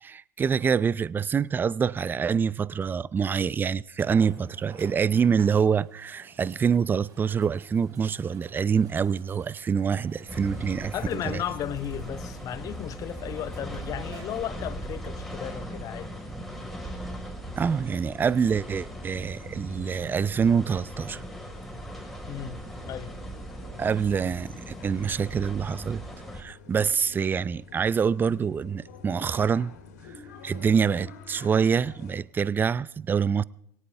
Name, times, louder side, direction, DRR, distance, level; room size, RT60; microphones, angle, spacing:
voice 1, 0.0-11.4 17.6-21.2 23.8-26.0 26.3-29.7 30.1-33.4, right 6 dB, 20° right, 0.6 m, -26 dB
sound 1, 2.9-3.0 4.0-15.0 15.7-15.8 19.3-19.4, right 5 dB, 40° right, 5.6 m, -52 dB
sound 2, 10.3-26.4, equal, ahead, 4.9 m, -39 dB
voice 2, 10.9-16.2 22.3-23.1, left 11 dB, 40° left, 1.1 m, -35 dB
sound 3, 19.1-32.2, left 5 dB, 70° left, 3.9 m, -49 dB
22.0 x 18.0 x 3.5 m
hypercardioid pair, 90°, 9 cm